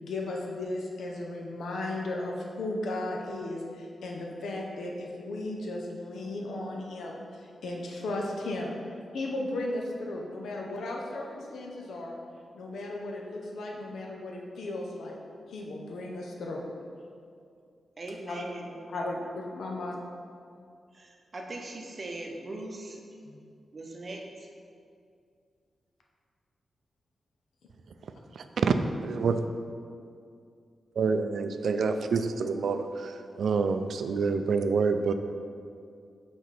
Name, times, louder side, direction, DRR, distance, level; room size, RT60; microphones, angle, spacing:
voice 1, 0.0-8.7 9.1-12.2 12.5-15.2 15.5-16.6 18.3-18.4 18.9-20.0 23.2-23.4 29.2-29.4, left 2 dB, 80° left, -1 dB, 0.7 m, -35 dB
voice 2, 18.0-19.1 20.9-23.0 23.7-24.5, right 2 dB, 35° right, 1 dB, 0.7 m, -40 dB
voice 3, 28.4-28.7 29.0-29.4 31.0-35.1, right 5 dB, 65° right, 8 dB, 0.3 m, -27 dB
5.8 x 4.0 x 4.8 m, 2.4 s
wide cardioid pair, 155°, 0 cm